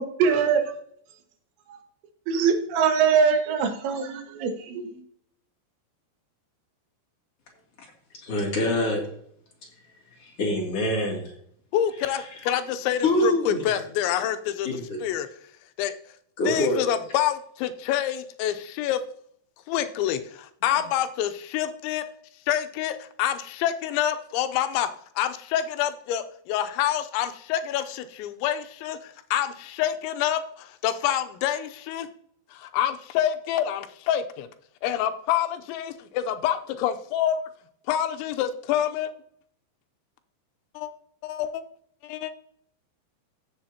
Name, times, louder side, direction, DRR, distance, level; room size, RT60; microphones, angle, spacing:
voice 1, 0.2-0.6 1.7-1.8 2.3-5.0, right 6 dB, 80° right, 5 dB, 3.4 m, -22 dB
voice 2, 8.2-9.0 10.2-11.3 11.9-12.5 13.0-13.7 14.6-15.0 16.4-16.9 20.6-20.8, left 1 dB, 40° left, -2 dB, 2.9 m, -26 dB
voice 3, 11.7-14.7 15.0-15.3 15.8-15.9 16.5-19.0 19.7-20.2 20.6-22.0 22.5-24.9 25.2-29.0 29.3-30.4 30.8-32.1 32.7-34.5 34.8-37.4 37.9-39.1 40.8-40.9 41.2-41.6 42.1-42.3, left 10 dB, 85° left, 9 dB, 3.0 m, -27 dB
15.0 x 7.1 x 2.8 m, 0.66 s
omnidirectional pair, 5.2 m